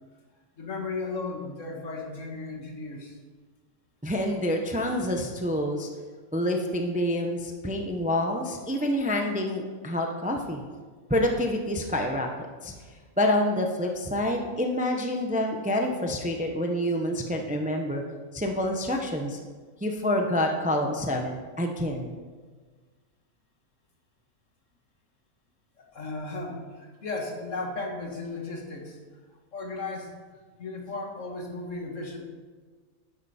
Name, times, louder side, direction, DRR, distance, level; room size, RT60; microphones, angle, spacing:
voice 1, 0.6-3.2 12.8-12.9 25.8-29.0 29.5-30.1 30.6-32.3, left 3 dB, 60° left, 1 dB, 2.0 m, -35 dB
voice 2, 4.0-5.9 6.3-10.6 11.1-12.3 12.6-12.7 13.2-18.0 18.3-19.4 19.8-22.2, left 1 dB, 5° right, 3 dB, 0.7 m, -27 dB
12.0 x 9.9 x 4.3 m, 1.5 s
omnidirectional pair, 1.5 m